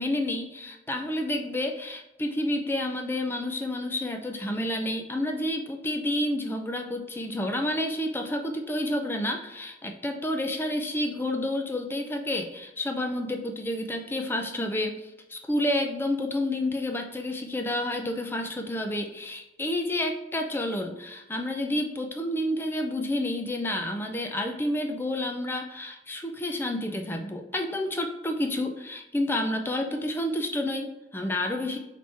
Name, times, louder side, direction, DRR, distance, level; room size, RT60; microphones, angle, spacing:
voice 1, 0.0-31.8, left 1 dB, 15° left, 4 dB, 0.4 m, -30 dB
4.1 x 3.1 x 3.3 m, 0.96 s
head